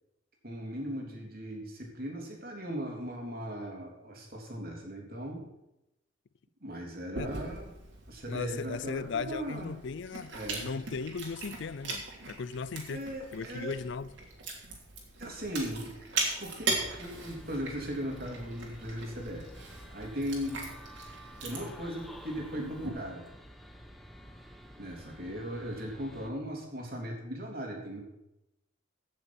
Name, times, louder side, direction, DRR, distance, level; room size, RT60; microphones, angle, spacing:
voice 1, 0.4-5.4 6.6-7.7 8.1-9.7 10.3-10.7 12.9-13.7 15.2-15.9 16.4-19.5 19.9-20.7 21.4-23.3 24.8-28.0, equal, 50° right, 3.2 m, -38 dB
Chewing mastication, 7.1-22.9, right 3 dB, 70° right, 3.2 m, -40 dB
voice 2, 8.3-10.3 10.6-13.0 13.3-14.1, left 5 dB, 65° left, 0.5 m, -37 dB
sound 1, 16.7-26.3, equal, ahead, 1.1 m, -50 dB
15.5 x 6.8 x 6.0 m
head